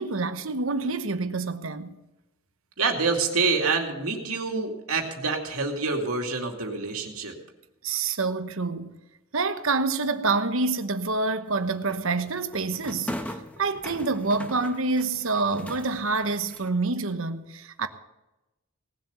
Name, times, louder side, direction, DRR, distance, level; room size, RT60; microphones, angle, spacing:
voice 1, 0.0-1.9 7.8-9.0 9.3-13.1 13.6-17.9, right 3 dB, 70° right, 1.0 m, -27 dB
voice 2, 2.8-7.3, right 4 dB, 85° right, 2.5 m, -27 dB
sound 1, 11.5-16.7, equal, 5° left, 0.9 m, -40 dB
18.5 x 7.7 x 6.9 m
head